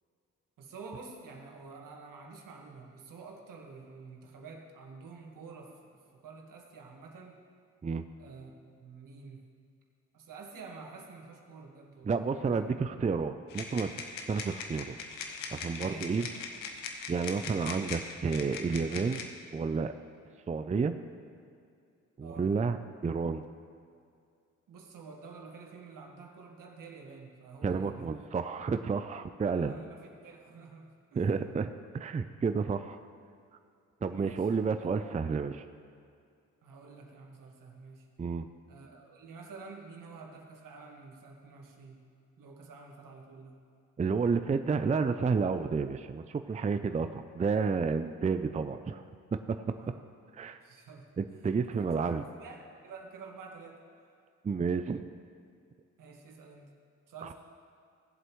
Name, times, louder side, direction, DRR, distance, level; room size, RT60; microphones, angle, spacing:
voice 1, 0.6-7.5 8.2-8.5 8.8-9.5 10.1-12.7 15.8-16.4 22.2-22.5 24.7-28.1 29.5-31.3 34.1-34.5 34.8-35.3 36.6-38.1 38.7-42.1 42.4-43.6 49.8-50.0 50.6-54.1 56.0-56.7 57.1-57.3, right 4 dB, 70° right, 1 dB, 1.7 m, -49 dB
voice 2, 12.1-13.9 14.3-15.0 15.5-16.3 17.1-19.2 19.5-19.9 20.5-20.9 22.2-22.8 23.0-23.4 27.6-29.7 31.2-31.7 31.9-33.0 34.0-35.6 38.2-38.5 44.0-49.0 49.3-49.6 50.3-50.6 51.2-52.2 54.4-55.0 57.2-57.3, right 5 dB, 20° right, 9 dB, 0.5 m, -30 dB
sound 1, 13.5-19.3, left 5 dB, 85° left, 0.9 m, -41 dB
17.5 x 7.7 x 3.1 m, 2.3 s
supercardioid pair, 50°, 33 cm